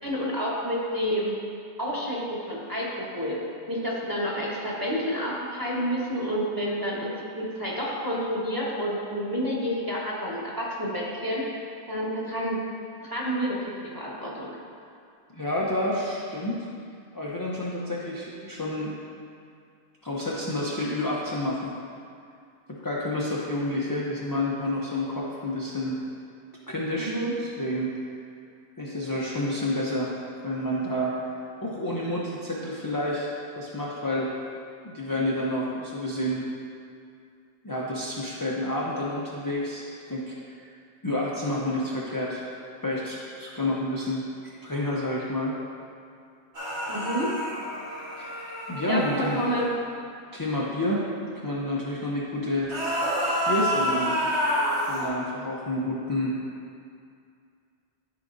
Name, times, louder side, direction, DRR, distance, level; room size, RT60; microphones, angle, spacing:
voice 1, 0.0-1.4 1.8-3.4 3.7-12.6 13.0-14.5 27.0-27.3 46.9-47.3 48.9-49.7, equal, 20° right, -6 dB, 1.3 m, -29 dB
voice 2, 15.3-16.6 17.1-18.9 20.0-21.7 22.7-26.0 26.7-27.1 27.4-27.9 28.8-30.1 30.4-33.3 33.6-34.3 34.8-36.4 37.6-40.6 41.0-42.5 42.8-44.2 44.6-45.6 48.2-48.4 48.7-49.4 50.3-51.1 51.4-52.7 53.5-54.3 54.9-56.4, left 1 dB, 20° left, -5 dB, 0.6 m, -29 dB
sound 1, 46.5-49.7 52.6-55.1, equal, 75° right, 1.8 m, -28 dB
12.5 x 5.0 x 2.7 m, 2.4 s
omnidirectional pair, 1.1 m